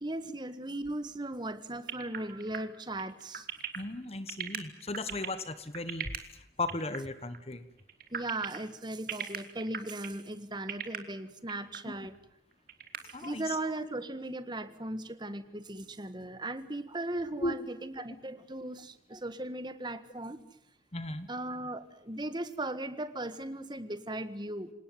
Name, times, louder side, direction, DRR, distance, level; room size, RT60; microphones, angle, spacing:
voice 1, 0.0-3.5 8.1-12.1 13.0-20.4 21.3-24.7, right 1 dB, 25° right, 12 dB, 1.6 m, -37 dB
sound 1, 1.9-6.2 6.7-7.0 7.2-7.4 7.8-8.6 9.1-10.2 10.5-11.0 11.5-11.8 12.1-12.2 12.5-13.3, right 8 dB, 55° right, 2.4 m, -37 dB
voice 2, 3.7-6.1 6.6-7.7 13.1-13.5 17.4-17.6 20.9-21.3, left 2 dB, 35° left, 13 dB, 1.3 m, -36 dB
27.5 x 18.5 x 9.5 m, 0.83 s
head